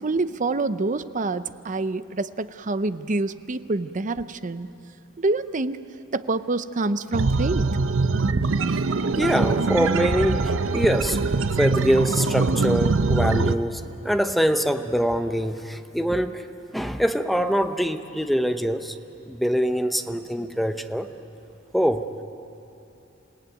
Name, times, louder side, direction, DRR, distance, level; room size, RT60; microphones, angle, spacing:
voice 1, 0.0-4.7 5.2-5.8 6.1-7.8, right 3 dB, 40° right, 12 dB, 0.7 m, -26 dB
sound 1, 7.1-13.6, right 3 dB, 80° right, 0.7 m, -23 dB
voice 2, 9.2-11.2 11.6-16.4 16.7-19.0 19.3-21.1 21.7-22.1, equal, ahead, 7 dB, 0.8 m, -24 dB
28.5 x 18.0 x 9.3 m, 2.9 s
head